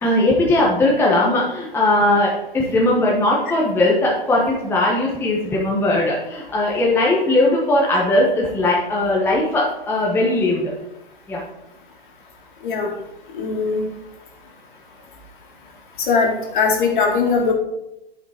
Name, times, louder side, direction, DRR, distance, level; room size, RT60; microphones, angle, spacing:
voice 1, 0.0-10.7 11.3-11.4, left 1 dB, 5° left, -4 dB, 1.1 m, -19 dB
voice 2, 13.3-13.9 16.1-17.5, left 5 dB, 55° left, 0 dB, 2.4 m, -20 dB
9.5 x 5.2 x 4.4 m, 0.89 s
hypercardioid pair, 145°, 30 cm